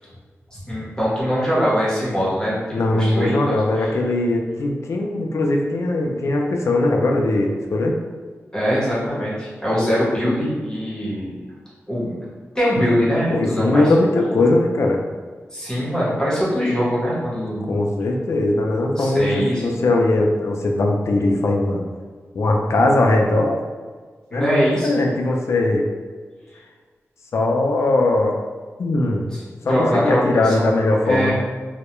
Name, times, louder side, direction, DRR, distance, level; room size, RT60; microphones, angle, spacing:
voice 1, 0.5-2.6 2.9-4.0 8.5-11.4 11.9-12.1 12.5-13.9 15.5-17.7 19.0-19.7 24.3-24.9 29.7-30.7 31.0-31.3, equal, 15° left, -8 dB, 0.9 m, -22 dB
voice 2, 2.7-7.9 12.8-12.9 13.2-15.0 17.7-21.8 22.3-23.6 24.3-25.8 27.3-28.4 28.8-29.3 29.6-31.3, left 2 dB, 70° left, 1 dB, 0.3 m, -20 dB
2.2 x 2.1 x 2.9 m, 1.5 s
wide cardioid pair, 95°, 5 cm